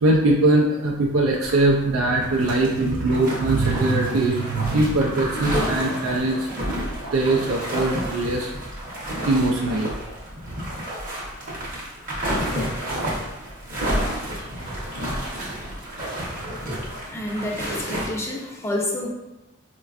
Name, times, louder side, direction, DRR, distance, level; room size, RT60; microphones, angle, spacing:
voice 1, 0.0-6.8 7.1-8.5 9.3-9.9, right 2 dB, 90° right, -2 dB, 0.4 m, -21 dB
sound 1, 1.4-1.8 2.1-18.1, equal, 40° right, 0.8 m, -30 dB
voice 2, 17.1-19.1, left 1 dB, 15° left, -1 dB, 0.4 m, -28 dB
4.2 x 2.2 x 2.4 m, 0.99 s
head